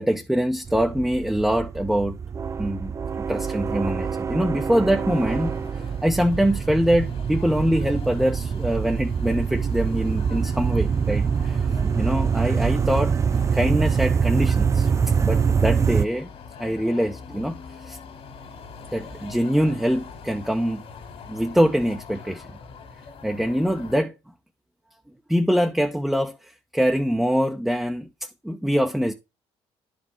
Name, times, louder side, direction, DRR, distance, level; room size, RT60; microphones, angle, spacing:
voice 1, 0.0-2.2 2.6-5.5 6.0-13.1 13.5-16.3 16.6-18.0 18.9-20.8 21.3-22.6 23.2-24.1 25.3-28.1 28.4-29.1, equal, ahead, 0.8 m, -24 dB
sound 1, 0.7-16.1, right 6 dB, 25° right, 0.3 m, -25 dB
sound 2, 5.0-24.0, left 5 dB, 55° left, 2.3 m, -43 dB
10.5 x 5.1 x 3.5 m
cardioid pair, 100°, 11 cm